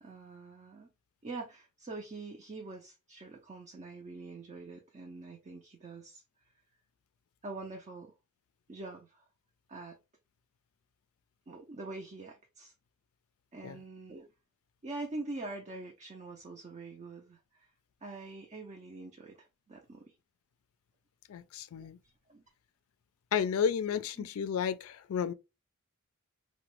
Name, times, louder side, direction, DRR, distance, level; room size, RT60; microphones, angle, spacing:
voice 1, 0.0-0.9 1.2-6.2 7.4-8.1 8.7-9.2 9.7-10.0 11.5-12.7 13.5-14.3 14.8-17.7 18.0-20.1 22.3-22.4 24.2-24.3, right 3 dB, 30° right, 0.4 m, -44 dB
voice 2, 21.3-22.0 23.3-25.3, left 7 dB, 75° left, 0.3 m, -32 dB
3.0 x 2.1 x 2.9 m
head